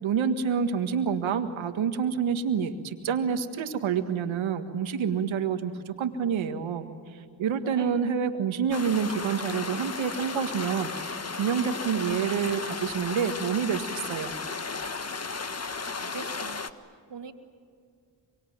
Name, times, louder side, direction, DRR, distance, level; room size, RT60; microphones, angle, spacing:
voice 1, 0.0-6.9 7.4-14.3, right 7 dB, 80° right, 8 dB, 1.8 m, -28 dB
voice 2, 7.6-8.0 16.0-17.3, right 5 dB, 65° right, 7 dB, 2.4 m, -43 dB
sound 1, 8.7-16.7, left 4 dB, 35° left, 1.5 m, -35 dB
24.5 x 24.5 x 9.4 m, 2.3 s
supercardioid pair, 45°, 46 cm